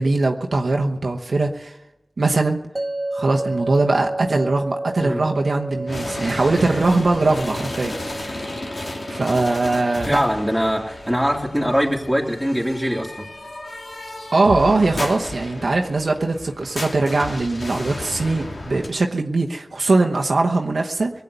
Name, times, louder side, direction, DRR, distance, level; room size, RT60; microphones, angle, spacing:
voice 1, 0.0-1.7 2.2-2.6 3.1-7.9 8.3-8.5 9.1-10.2 14.3-21.1, right 3 dB, 70° right, 2 dB, 1.0 m, -21 dB
sound 1, 2.8-15.9, right 2 dB, 35° right, 0.7 m, -34 dB
sound 2, 5.9-18.9, left 2 dB, 65° left, 2.2 m, -33 dB
voice 2, 10.1-13.3, equal, 5° left, -1 dB, 2.9 m, -22 dB
19.5 x 8.3 x 8.1 m, 1.0 s
cardioid pair, 45°, 0 cm